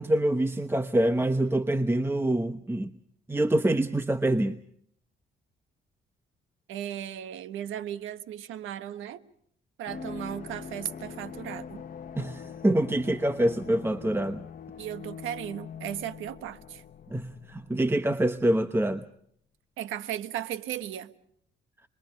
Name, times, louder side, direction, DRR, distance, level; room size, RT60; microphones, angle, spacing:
voice 1, 0.0-2.9 3.3-4.6 12.2-14.4 17.1-19.0, right 1 dB, 10° right, 1.0 m, -25 dB
voice 2, 6.7-9.2 9.8-11.8 14.8-16.8 19.8-21.1, right 11 dB, 85° right, 1.4 m, -36 dB
sound 1, 9.9-18.4 18.6-18.7, left 6 dB, 45° left, 1.3 m, -43 dB
28.5 x 22.0 x 5.3 m
cardioid pair, 90°, 20 cm